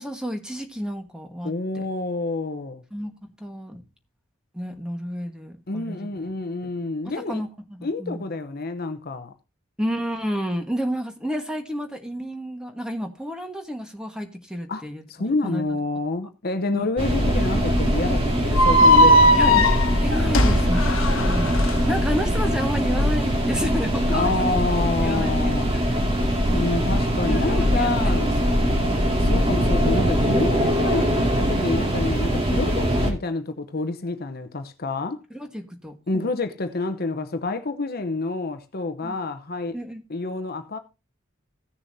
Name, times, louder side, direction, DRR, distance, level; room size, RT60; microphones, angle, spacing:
voice 1, 0.0-1.8 2.9-3.8 4.5-6.3 6.6-6.7 7.0-8.2 9.8-15.6 16.7-16.9 19.4-19.7 20.0-21.0 21.3-24.5 25.0-25.8 27.3-29.2 35.3-36.3 39.0-39.1 39.7-40.0, equal, 5° right, 1.4 m, -31 dB
voice 2, 1.4-2.8 5.7-7.4 7.8-9.3 14.7-14.8 15.1-19.7 24.1-25.7 26.5-28.3 29.2-35.2 36.1-39.8 40.1-40.8, left 3 dB, 45° left, 0.8 m, -28 dB
sound 1, 17.0-33.1, equal, 25° right, 2.2 m, -22 dB
sound 2, 18.5-21.7, equal, 70° left, 1.2 m, -17 dB
16.5 x 6.9 x 2.7 m
head